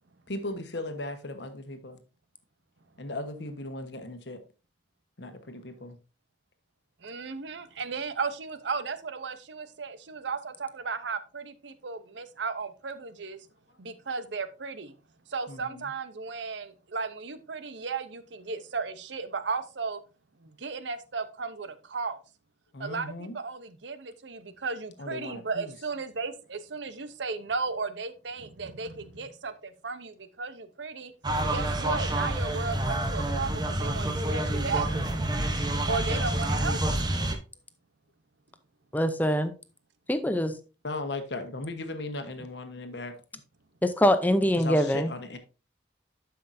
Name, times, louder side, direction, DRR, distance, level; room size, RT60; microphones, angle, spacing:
voice 1, 0.3-2.0 3.0-4.4 5.2-6.0 15.5-15.9 22.7-23.3 25.0-25.7 40.8-43.2 44.6-45.4, left 2 dB, 75° left, 1.2 m, -37 dB
voice 2, 7.0-13.5 13.8-14.9 15.3-20.0 20.4-22.2 22.8-31.1 31.4-34.9 35.9-37.1, right 4 dB, 80° right, 0.8 m, -35 dB
sound 1, 31.2-37.4, right 1 dB, 25° right, 0.8 m, -28 dB
voice 3, 38.9-39.5 40.1-40.5 43.8-45.1, equal, 10° left, 0.6 m, -23 dB
11.5 x 5.7 x 2.6 m
head